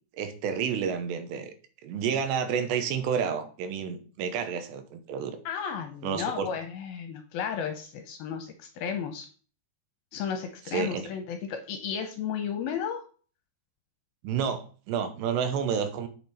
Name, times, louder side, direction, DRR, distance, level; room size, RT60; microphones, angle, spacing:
voice 1, 0.2-1.5 1.8-5.4 6.0-6.5 10.7-11.1 14.2-16.1, right 7 dB, 80° right, 9 dB, 3.0 m, -30 dB
voice 2, 5.5-9.3 10.1-13.0, left 7 dB, 75° left, 6 dB, 2.3 m, -33 dB
8.4 x 6.3 x 4.1 m, 0.40 s
omnidirectional pair, 5.0 m